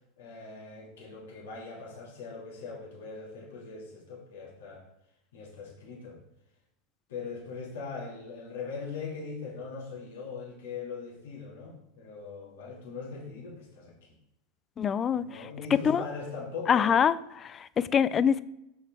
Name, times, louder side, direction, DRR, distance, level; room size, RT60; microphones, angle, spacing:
voice 1, 0.2-4.8 5.3-6.2 7.1-14.1 15.1-16.9, left 4 dB, 75° left, -3 dB, 2.4 m, -41 dB
voice 2, 14.8-15.2 15.9-16.0 16.7-18.4, left 7 dB, 30° left, 17 dB, 0.4 m, -25 dB
6.7 x 5.4 x 3.6 m, 0.84 s
hypercardioid pair, 95°, 0 cm